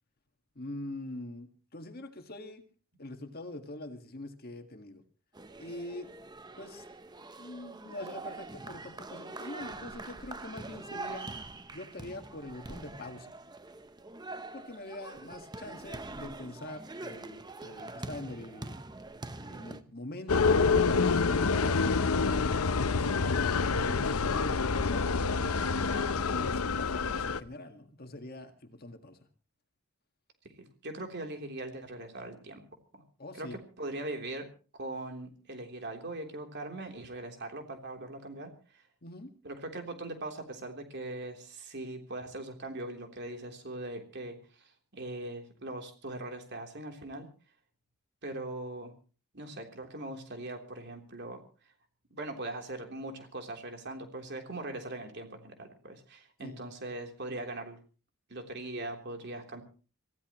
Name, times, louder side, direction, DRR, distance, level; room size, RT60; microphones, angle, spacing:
voice 1, 0.6-2.7 3.0-5.0 5.6-6.1 6.6-6.8 7.2-11.3 11.7-13.4 14.5-18.8 19.4-23.1 23.7-29.2 33.2-33.6 39.0-39.3 56.4-56.6, left 1 dB, 45° left, 6 dB, 1.8 m, -44 dB
sound 1, 5.3-19.8, right 2 dB, 20° right, 0.8 m, -44 dB
sound 2, 20.3-27.4, left 4 dB, 90° left, 0.8 m, -27 dB
voice 2, 30.6-32.6 32.9-33.0 33.3-34.5 34.7-38.5 39.4-47.3 48.2-48.9 49.3-51.4 52.1-57.8 58.3-59.6, right 2 dB, 50° right, 4 dB, 3.5 m, -40 dB
26.5 x 15.5 x 3.1 m, 0.38 s
head